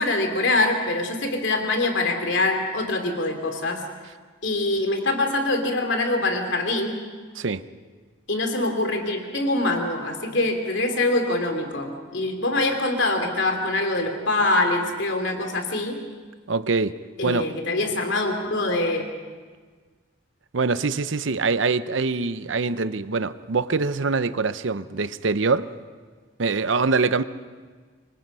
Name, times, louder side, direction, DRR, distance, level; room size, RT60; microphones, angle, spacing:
voice 1, 0.0-3.8 4.4-7.0 8.3-16.0 17.2-19.0, left 2 dB, 70° left, 3.0 m, -24 dB
voice 2, 16.5-17.5 20.5-25.7 26.4-27.2, right 4 dB, 75° right, 0.7 m, -24 dB
26.0 x 24.0 x 5.6 m
head